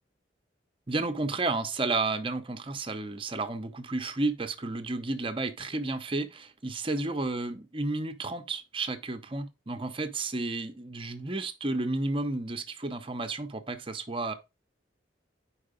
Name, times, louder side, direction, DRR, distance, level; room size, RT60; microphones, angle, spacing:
voice 1, 0.9-14.3, right 2 dB, 30° right, 0.7 m, -32 dB
4.8 x 4.7 x 5.0 m
head